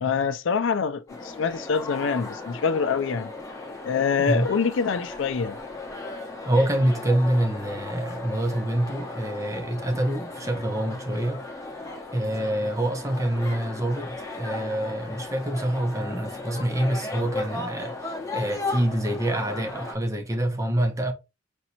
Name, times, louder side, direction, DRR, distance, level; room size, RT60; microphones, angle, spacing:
voice 1, 0.0-3.3 3.8-5.6, left 5 dB, 65° left, 0.4 m, -25 dB
sound 1, 1.1-19.9, left 3 dB, 15° left, 1.0 m, -36 dB
voice 2, 6.5-11.4 12.1-21.1, right 1 dB, 15° right, 0.6 m, -26 dB
5.2 x 2.9 x 2.6 m
head